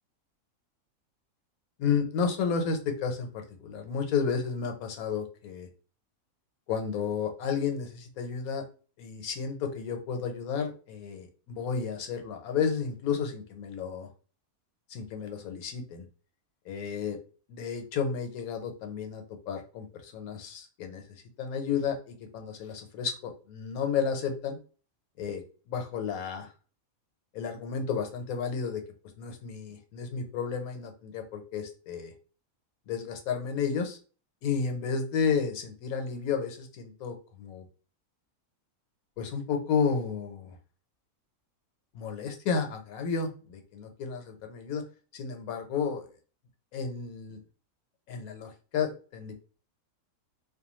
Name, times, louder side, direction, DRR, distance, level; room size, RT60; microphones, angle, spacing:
voice 1, 1.8-5.7 6.7-8.6 9.0-14.1 14.9-16.0 16.7-17.2 17.5-24.6 25.2-25.4 25.7-26.5 27.3-28.8 29.2-32.1 32.9-34.0 34.4-37.6 39.2-40.6 41.9-44.8 45.1-46.1 46.7-47.4 48.1-49.3, left 6 dB, 80° left, 4 dB, 1.1 m, -32 dB
2.5 x 2.2 x 2.9 m, 0.38 s
omnidirectional pair, 1.5 m